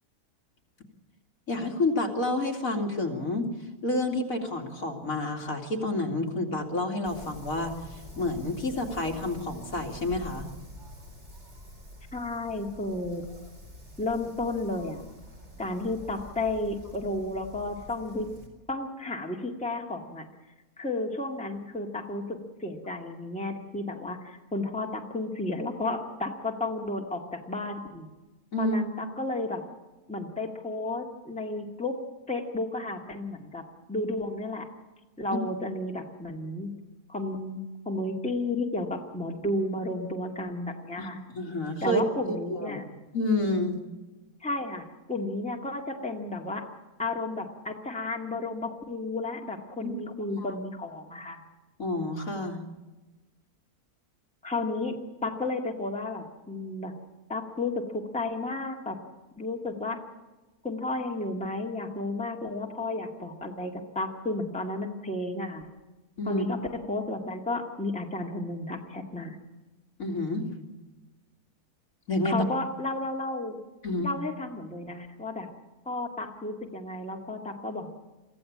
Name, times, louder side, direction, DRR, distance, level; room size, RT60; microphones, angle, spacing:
voice 1, 1.5-3.5 3.8-10.5 28.5-28.8 41.0-42.0 42.3-42.8 43.1-43.8 49.8-50.0 50.4-50.5 51.8-52.6 66.2-66.4 70.0-70.5 72.1-72.5 73.8-74.1, left 2 dB, 65° left, 1 dB, 3.0 m, -29 dB
Wind, 7.0-18.5, left 1 dB, 45° right, 4.5 m, -47 dB
voice 2, 12.1-13.2 14.0-15.0 15.6-18.3 18.7-20.3 20.8-22.2 22.6-28.1 28.6-29.6 30.1-32.0 32.3-33.6 33.9-34.7 35.2-36.7 37.1-41.2 41.8-42.8 44.4-46.6 47.0-51.4 54.4-54.9 55.2-56.9 57.3-59.0 59.4-60.0 60.6-65.6 66.3-66.6 66.9-69.4 72.2-73.6 74.0-75.5 75.9-77.9, left 2 dB, 5° left, 1 dB, 2.0 m, -32 dB
24.0 x 15.0 x 8.6 m, 1.2 s
omnidirectional pair, 1.6 m